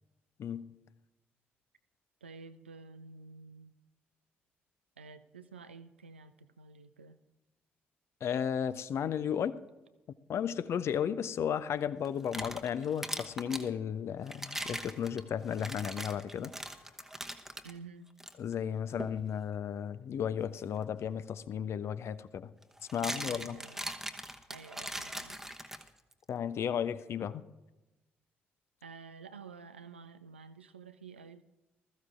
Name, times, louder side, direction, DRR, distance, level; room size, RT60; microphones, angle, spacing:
voice 1, 0.4-0.7 8.2-9.6 10.3-16.5 18.4-22.5 22.9-23.6 26.3-27.4, left 8 dB, 50° left, 15 dB, 0.5 m, -34 dB
voice 2, 2.2-3.8 5.0-7.2 17.6-18.1 23.0-23.9 24.5-25.4 28.8-31.4, right 4 dB, 85° right, 11 dB, 0.4 m, -50 dB
sound 1, 12.0-13.7 14.3-17.7 18.2-18.3 19.0-19.2 21.3-21.4 22.6-26.1, right 1 dB, 5° right, 0.9 m, -41 dB
20.0 x 14.0 x 2.5 m, 1.1 s
figure-of-eight pair, 40°, 6 cm